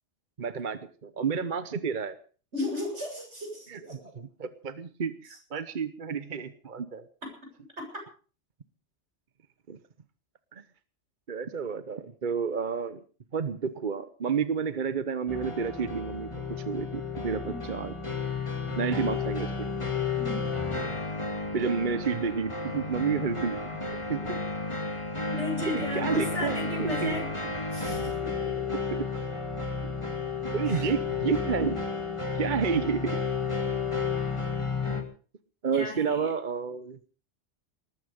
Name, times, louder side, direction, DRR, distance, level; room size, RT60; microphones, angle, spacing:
voice 1, 0.4-2.2 3.7-3.8 4.1-7.1 9.7-9.8 10.5-10.6 11.3-13.0 13.3-16.3 16.7-17.9 18.8-19.7 21.5-23.8 24.1-24.4 25.7-27.2 28.0-28.2 28.9-29.1 30.5-31.8 32.4-33.2 35.6-37.0, right 6 dB, 45° right, 13 dB, 1.0 m, -30 dB
voice 2, 2.5-4.1 7.8-7.9 17.4-17.6 20.2-20.5 25.3-27.3 27.7-28.3 30.7-30.9 35.7-36.3, left 1 dB, 80° right, 2 dB, 7.9 m, -35 dB
sound 1, 15.3-35.0, left 4 dB, 25° left, 2.6 m, -32 dB
19.5 x 14.5 x 5.1 m, 0.39 s
omnidirectional pair, 1.1 m